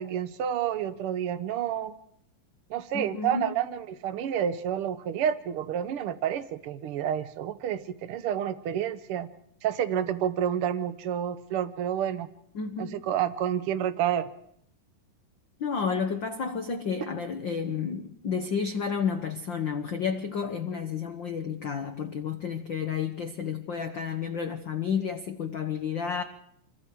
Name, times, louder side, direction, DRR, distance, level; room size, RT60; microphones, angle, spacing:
voice 1, 0.0-2.0 2.7-9.3 9.6-12.3 12.8-14.3, right 9 dB, 75° right, 1.2 m, -29 dB
voice 2, 2.9-3.5 12.5-13.0 15.6-26.2, left 6 dB, 85° left, 1.0 m, -31 dB
27.5 x 22.5 x 4.7 m
omnidirectional pair, 3.9 m